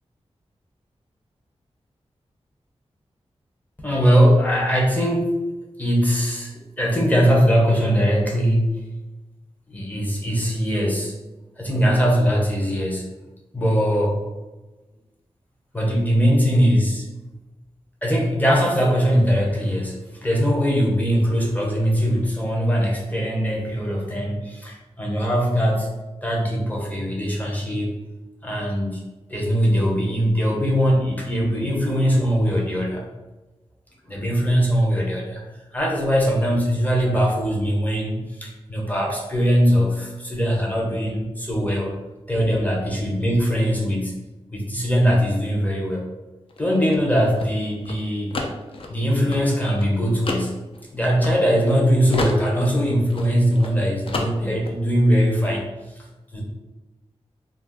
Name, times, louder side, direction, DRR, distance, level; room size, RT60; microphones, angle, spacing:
voice 1, 3.8-5.3 5.8-8.9 9.7-11.1 11.6-13.1 13.5-14.2 15.7-17.1 18.0-25.9 26.2-27.9 28.4-33.1 34.1-35.4 35.7-41.9 42.3-44.2 44.5-46.1 46.6-48.3 48.9-50.6 50.9-55.7 56.0-56.1 56.3-56.4, equal, 15° left, -2 dB, 0.7 m, -21 dB
sound 1, 46.5-51.8 52.1-53.8 54.1-54.8, left 2 dB, 55° left, 0.4 m, -31 dB
2.4 x 2.3 x 3.5 m, 1.1 s
wide cardioid pair, 120°, 11 cm